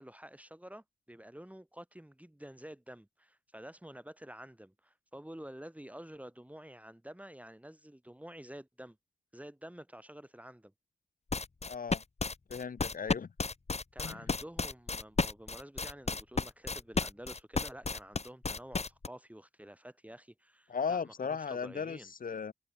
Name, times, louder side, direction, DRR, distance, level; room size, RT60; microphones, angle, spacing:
voice 1, 0.0-9.0 9.3-10.7 13.9-22.1, right 1 dB, 10° right, 7.0 m, -49 dB
sound 1, 11.3-19.1, left 4 dB, 40° left, 1.6 m, -33 dB
voice 2, 11.6-12.0 12.5-13.3 14.0-14.2 20.7-22.5, left 6 dB, 60° left, 1.0 m, -36 dB
cardioid pair, 50°, 16 cm